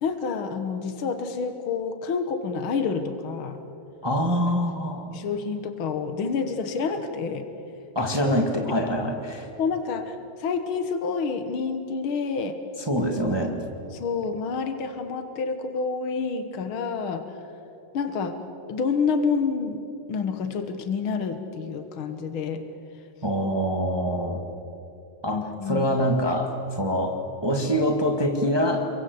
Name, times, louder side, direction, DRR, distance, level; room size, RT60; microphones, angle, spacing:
voice 1, 0.0-3.6 5.1-7.5 9.6-12.6 13.9-17.4 17.9-18.4 18.7-19.8 20.1-22.6 25.3-25.9, left 5 dB, 75° left, 8 dB, 1.2 m, -28 dB
voice 2, 4.0-5.1 7.9-9.5 12.9-13.6 23.2-24.4 25.2-28.9, equal, 20° right, 3 dB, 0.6 m, -25 dB
29.5 x 23.0 x 8.1 m, 2.8 s
omnidirectional pair, 4.5 m